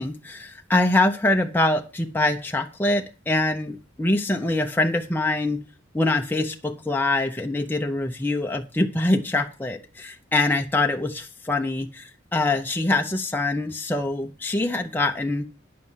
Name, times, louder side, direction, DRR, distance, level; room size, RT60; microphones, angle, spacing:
voice 1, 0.0-5.6 5.9-15.5, left 2 dB, 10° left, 3 dB, 0.7 m, -24 dB
9.5 x 6.6 x 7.3 m, 0.33 s
head